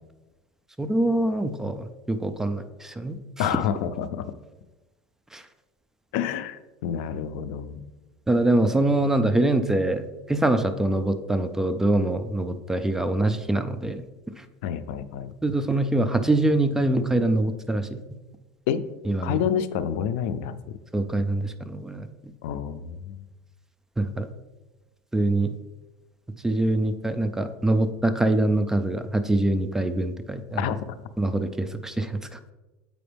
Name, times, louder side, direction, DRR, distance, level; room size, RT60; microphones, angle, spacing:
voice 1, 0.8-3.5 5.3-5.4 8.3-14.1 14.4-14.5 15.4-18.0 19.0-19.4 20.9-22.1 24.0-24.3 25.1-25.5 26.4-30.7 31.2-32.4, right 2 dB, 5° right, 9 dB, 0.3 m, -24 dB
voice 2, 3.4-4.3 6.1-7.8 14.6-15.3 18.7-18.8 19.2-20.5 22.4-23.2 30.6-30.8, left 8 dB, 75° left, 13 dB, 0.4 m, -28 dB
7.8 x 5.1 x 3.4 m, 1.1 s
supercardioid pair, 140°, 7 cm